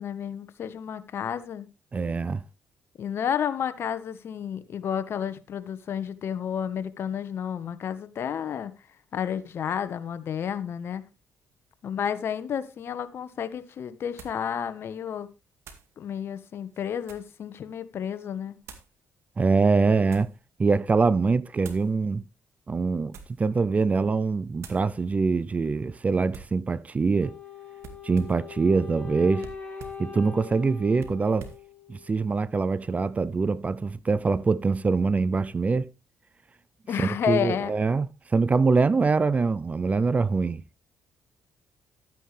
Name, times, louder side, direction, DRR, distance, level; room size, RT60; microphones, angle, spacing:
voice 1, 0.0-1.7 3.0-8.7 9.1-11.0 11.8-15.3 16.0-18.6 36.9-37.7, left 8 dB, 60° left, 1.3 m, -31 dB
voice 2, 1.9-2.4 19.4-20.3 20.6-22.2 22.7-27.3 28.0-29.5 30.0-31.5 31.9-35.9 37.0-40.6, right 4 dB, 30° right, 0.6 m, -24 dB
sound 1, 13.1-13.2 14.2-14.5 15.6-15.9 16.6-17.4 18.6-18.9 19.7-20.4 21.6-21.9 23.0-23.5 23.9-24.2 24.6-24.9 26.3-26.6 27.8-28.5 29.4-30.1 31.0-31.7, right 6 dB, 70° right, 2.1 m, -46 dB
Wind instrument woodwind instrument, 27.2-32.2, left 7 dB, 25° left, 5.4 m, -42 dB
12.5 x 9.2 x 3.4 m
supercardioid pair, 70°, 5 cm